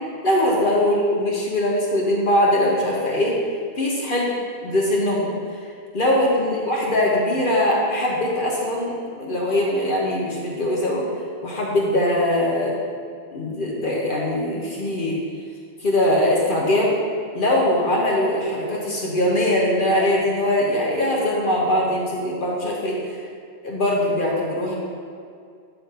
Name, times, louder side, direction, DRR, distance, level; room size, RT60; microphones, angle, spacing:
voice 1, 0.2-3.4 3.8-4.3 4.6-5.6 5.9-11.1 11.4-12.8 13.3-15.2 15.8-17.0 17.3-23.2 23.6-24.8, left 1 dB, 50° left, -3 dB, 1.0 m, -21 dB
6.9 x 3.7 x 5.5 m, 2.2 s
omnidirectional pair, 1.1 m